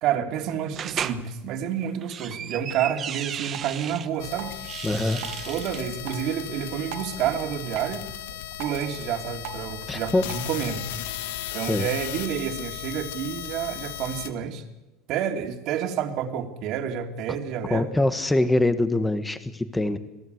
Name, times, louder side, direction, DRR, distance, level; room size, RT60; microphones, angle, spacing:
voice 1, 0.0-4.5 5.4-8.0 8.6-10.8 11.5-14.6 15.1-17.9, right 9 dB, 50° right, 5 dB, 2.9 m, -29 dB
sound 1, 0.8-1.2 1.9-4.1 4.5-5.8, right 9 dB, 30° right, 1.2 m, -34 dB
Drip, 3.5-10.5, right 9 dB, 65° right, 2.3 m, -44 dB
sound 2, 4.2-14.3, left 11 dB, 90° left, 1.8 m, -36 dB
voice 2, 4.8-5.2 9.9-10.2 11.7-11.9 17.7-20.0, left 2 dB, 5° left, 11 dB, 1.4 m, -23 dB
27.0 x 18.0 x 8.1 m, 1.0 s
cardioid pair, 155°, 0 cm